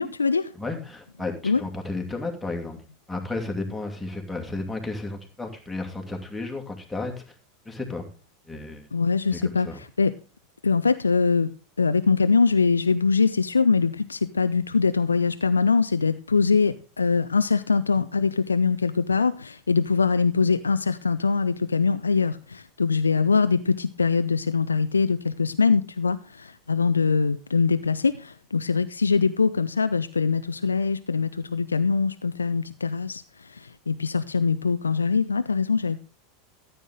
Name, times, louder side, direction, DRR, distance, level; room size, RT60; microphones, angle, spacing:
voice 1, 0.0-0.5 1.4-1.6 8.9-10.1 10.6-11.5 11.8-33.2 33.6-36.0, left 5 dB, 80° left, 12 dB, 0.4 m, -23 dB
voice 2, 0.6-2.8 3.1-7.2 7.7-8.1 8.5-8.9 9.3-9.8, left 2 dB, 5° left, 1 dB, 2.5 m, -33 dB
13.5 x 7.9 x 3.7 m, 0.34 s
figure-of-eight pair, 85°, 0 cm